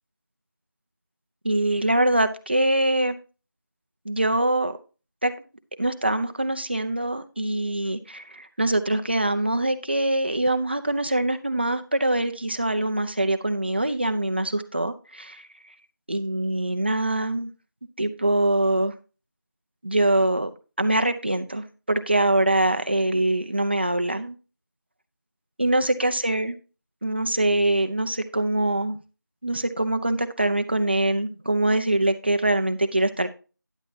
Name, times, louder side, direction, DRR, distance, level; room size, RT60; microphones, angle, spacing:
voice 1, 1.4-3.2 4.0-4.8 5.2-5.3 5.8-15.5 16.1-17.5 18.0-18.9 19.8-24.3 25.6-26.6 27.0-29.0 29.4-33.3, right 1 dB, 30° right, 9 dB, 0.7 m, -24 dB
9.9 x 8.7 x 2.8 m, 0.33 s
figure-of-eight pair, 170°, 11 cm